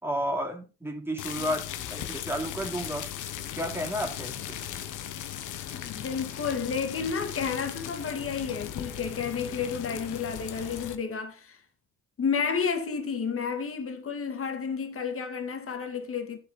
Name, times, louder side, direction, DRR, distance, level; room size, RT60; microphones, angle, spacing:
voice 1, 0.0-3.1 3.6-4.6, equal, 10° right, 2.9 m, -32 dB
sound 1, 1.2-11.0, left 11 dB, 80° left, 1.2 m, -37 dB
voice 2, 5.7-11.6 12.2-16.4, left 6 dB, 45° left, 2.2 m, -31 dB
11.0 x 7.8 x 4.1 m
cardioid pair, 90°, 30 cm